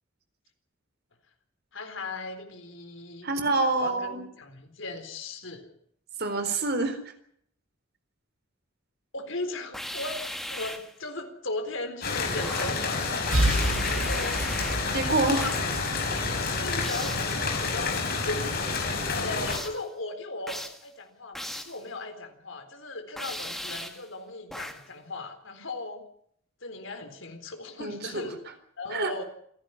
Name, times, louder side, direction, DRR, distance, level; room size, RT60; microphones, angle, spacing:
voice 1, 1.7-3.3 3.8-5.7 9.1-10.2 10.5-13.3 13.9-14.6 15.2-15.7 16.1-18.4 19.1-26.0 26.6-28.4 28.8-29.2, left 2 dB, 70° left, 6 dB, 4.1 m, -37 dB
voice 2, 3.2-4.3 6.2-7.0 14.9-15.4 27.8-28.3 28.9-29.1, right 3 dB, 55° right, 8 dB, 3.9 m, -26 dB
sound 1, 9.7-11.0 12.4-12.9 13.3-14.9 15.4-15.7 16.8-17.3 19.5-19.9 20.5-20.9 21.3-21.8 23.2-24.1 24.5-24.9, equal, ahead, 1.7 m, -37 dB
sound 2, 12.0-19.6, left 4 dB, 50° left, 5.4 m, -29 dB
sound 3, 13.3-17.0, right 1 dB, 85° right, 6.1 m, -30 dB
28.0 x 11.5 x 9.8 m, 0.68 s
head